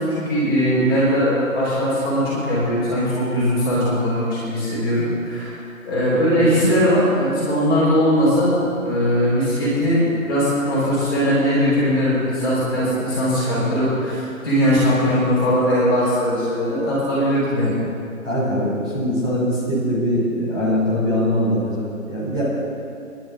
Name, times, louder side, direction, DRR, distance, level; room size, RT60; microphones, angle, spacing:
voice 1, 0.0-5.5 5.8-8.5 8.8-17.7, equal, 15° left, -10 dB, 3.6 m, -20 dB
voice 2, 18.2-22.4, equal, 15° right, -12 dB, 3.2 m, -22 dB
25.5 x 11.0 x 3.8 m, 2.6 s
figure-of-eight pair, 180°, 42 cm